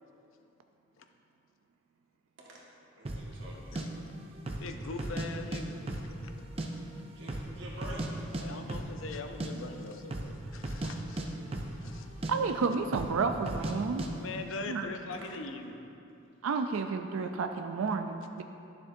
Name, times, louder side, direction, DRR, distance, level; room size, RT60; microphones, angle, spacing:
voice 1, 3.0-3.6 7.1-8.4 15.1-15.3, right 1 dB, 65° right, -4 dB, 1.6 m, -46 dB
sound 1, 3.1-3.3 3.8-3.9 4.4-4.7 5.0-5.6 5.9-6.7 6.9-7.0 7.3-8.1 8.3-8.4 8.7-8.9 9.2-9.5 10.0-10.3 10.6-12.0 12.2-12.3 12.9-13.2 13.5-13.7 14.0-14.1, right 1 dB, 30° right, 0.5 m, -35 dB
voice 2, 4.6-6.3 8.4-11.3 11.8-12.1 14.2-15.8, left 3 dB, 75° left, 6 dB, 0.6 m, -42 dB
voice 3, 12.3-14.0 14.7-14.9 16.4-18.4, right 4 dB, 85° right, 6 dB, 0.4 m, -31 dB
12.0 x 7.0 x 2.6 m, 2.7 s
head